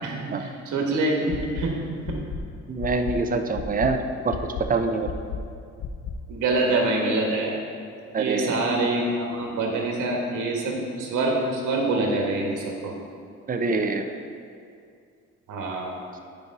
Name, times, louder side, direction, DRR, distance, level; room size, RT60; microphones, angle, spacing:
voice 1, 0.0-2.2 6.3-7.6 8.2-12.9 15.5-16.0, right 2 dB, 80° right, 0 dB, 1.5 m, -26 dB
sound 1, 1.3-1.6 2.0-2.4 2.8-3.2 3.5-3.9 4.3-4.6 5.0-5.4 5.8-6.1, left 10 dB, 70° left, 0.8 m, -32 dB
voice 2, 2.7-4.0 4.2-4.4 4.7-5.1 8.1-8.6 13.5-14.1, right 4 dB, 30° right, 6 dB, 0.6 m, -25 dB
9.3 x 4.8 x 4.7 m, 2.3 s
cardioid pair, 90°, 30 cm